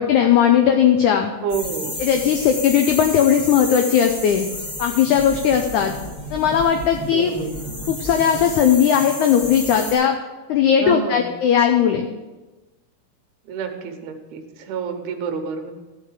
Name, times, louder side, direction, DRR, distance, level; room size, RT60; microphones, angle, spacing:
voice 1, 0.0-1.3 2.0-4.5 4.8-5.9 6.3-7.3 7.9-10.1 10.5-12.1, left 8 dB, 90° left, 5 dB, 1.7 m, -17 dB
voice 2, 1.4-2.0 7.1-7.6 10.8-11.3 13.5-15.7, right 6 dB, 90° right, 5 dB, 3.1 m, -28 dB
sound 1, 1.5-9.9, left 1 dB, 35° left, 5.6 m, -32 dB
14.0 x 5.1 x 7.4 m, 1.2 s
omnidirectional pair, 4.4 m